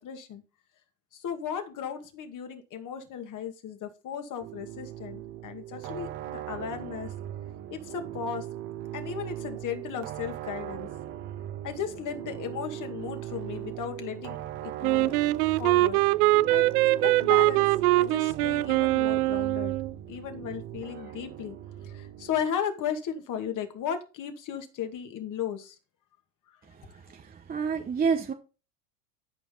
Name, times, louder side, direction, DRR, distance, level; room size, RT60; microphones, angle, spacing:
voice 1, 0.0-0.4 1.1-7.1 7.7-8.5 8.9-10.9 11.6-14.4 14.6-15.1 15.6-16.0 16.5-17.7 18.0-19.8 20.1-21.6 21.8-25.8, left 8 dB, 40° left, 2.2 m, -35 dB
sound 1, 4.4-22.5, right 12 dB, 50° right, 1.5 m, -39 dB
Wind instrument woodwind instrument, 14.8-19.9, right 18 dB, 70° right, 0.6 m, -23 dB
voice 2, 26.7-28.3, right 6 dB, 20° right, 1.0 m, -29 dB
13.0 x 5.2 x 3.9 m
hypercardioid pair, 100°, 46 cm